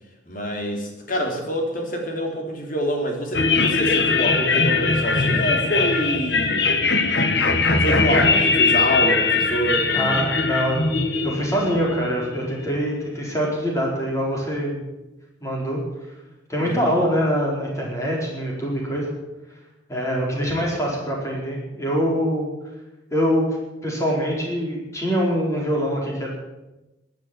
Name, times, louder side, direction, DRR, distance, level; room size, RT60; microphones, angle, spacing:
voice 1, 0.3-6.7 7.8-10.1 16.6-16.9, equal, 45° left, 2 dB, 3.1 m, -26 dB
sound 1, 3.3-12.7, left 4 dB, 60° left, 1.5 m, -21 dB
voice 2, 9.9-10.9 11.2-14.8 15.4-15.8 16.5-19.1 19.9-22.5 23.1-23.6 23.8-26.3, equal, 15° left, -2 dB, 4.5 m, -24 dB
13.0 x 10.0 x 9.3 m, 1.0 s
head